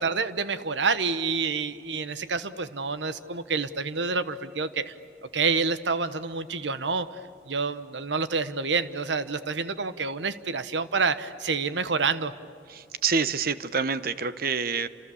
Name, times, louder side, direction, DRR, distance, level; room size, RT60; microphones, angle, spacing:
voice 1, 0.0-4.9 5.3-7.1 7.5-12.3, right 4 dB, 85° right, 12 dB, 1.1 m, -28 dB
voice 2, 12.7-14.9, right 5 dB, 55° right, 13 dB, 1.0 m, -27 dB
30.0 x 27.0 x 7.1 m, 2.4 s
head